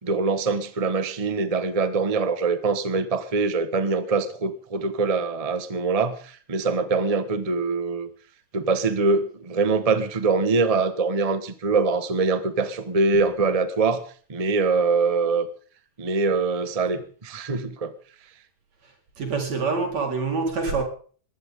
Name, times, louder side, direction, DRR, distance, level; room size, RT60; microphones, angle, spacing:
voice 1, 0.0-8.1 8.5-14.0 14.3-15.5 16.0-17.9, right 4 dB, 50° right, 11 dB, 0.4 m, -23 dB
voice 2, 18.8-20.8, right 4 dB, 65° right, 3 dB, 5.5 m, -26 dB
20.5 x 16.0 x 3.8 m, 0.43 s
omnidirectional pair, 3.3 m